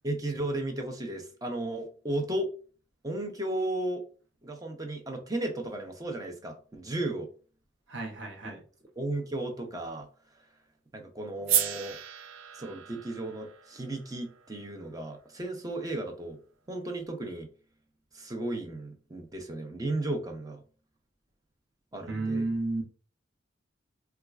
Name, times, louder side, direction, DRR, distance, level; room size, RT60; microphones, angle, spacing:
voice 1, 0.0-2.5 3.0-4.0 4.4-7.3 8.4-8.6 9.0-10.1 10.9-12.0 12.5-16.4 16.7-17.5 18.1-20.6 21.9-22.5, right 1 dB, 20° right, 0.5 m, -34 dB
voice 2, 7.9-8.6 22.1-22.8, right 2 dB, 65° right, 0.9 m, -32 dB
sound 1, 11.5-15.7, right 10 dB, 85° right, 0.4 m, -34 dB
4.3 x 2.3 x 2.4 m
head